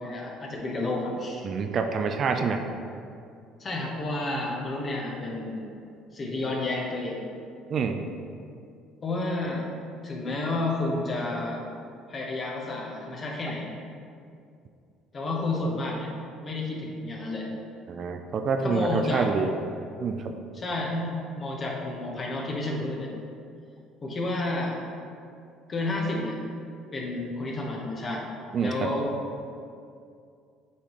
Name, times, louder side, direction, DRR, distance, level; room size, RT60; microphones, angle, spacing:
voice 1, 0.0-1.5 3.6-5.7 6.1-7.2 9.0-9.6 10.0-11.6 12.1-13.7 15.1-16.1 16.4-17.5 18.6-19.3 20.5-23.1 24.0-24.7 25.7-26.4 26.9-28.3 28.6-29.1, left 2 dB, 40° left, -1 dB, 1.3 m, -30 dB
voice 2, 1.4-2.7 7.7-8.0 17.9-19.6 20.0-20.3 28.5-28.9, right 5 dB, 50° right, 6 dB, 0.4 m, -27 dB
8.1 x 3.9 x 3.2 m, 2.4 s
hypercardioid pair, 60°, 0 cm